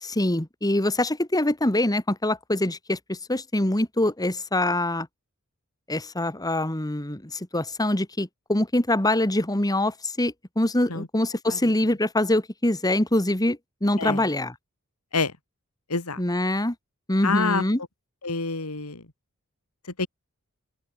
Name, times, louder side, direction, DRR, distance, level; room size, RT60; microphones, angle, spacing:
voice 1, 0.0-5.1 5.9-14.6 16.2-16.8 17.1-17.8, left 1 dB, 15° left, 1.9 m, -24 dB
voice 2, 17.2-17.6 18.2-19.0 20.0-20.1, left 4 dB, 90° left, 2.9 m, -26 dB
open air
head